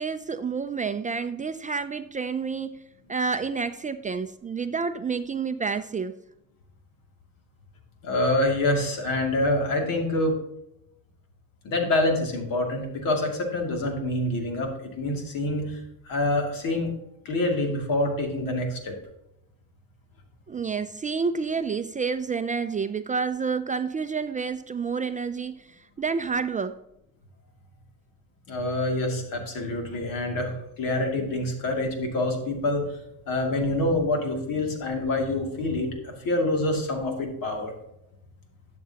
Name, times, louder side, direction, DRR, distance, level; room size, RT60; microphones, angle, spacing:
voice 1, 0.0-6.2 20.5-26.8, right 5 dB, 25° right, 10 dB, 0.4 m, -29 dB
voice 2, 8.0-10.3 11.6-15.8 16.0-16.9 17.2-18.9 28.5-32.9 33.3-37.7, left 2 dB, 70° left, 2 dB, 2.6 m, -26 dB
12.0 x 6.9 x 2.9 m, 0.83 s
cardioid pair, 95°, 35 cm